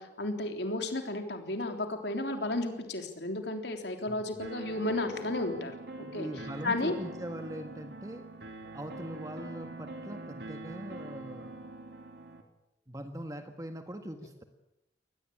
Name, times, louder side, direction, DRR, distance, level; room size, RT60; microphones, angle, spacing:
voice 1, 0.0-5.7 6.0-6.3 6.6-6.9, left 2 dB, 65° left, 5 dB, 3.6 m, -33 dB
sound 1, 4.4-12.4, right 2 dB, 60° right, 3.0 m, -44 dB
voice 2, 6.1-8.2 8.7-11.5 12.9-14.4, right 1 dB, 20° right, 6 dB, 1.6 m, -41 dB
23.5 x 19.5 x 8.7 m, 0.91 s
head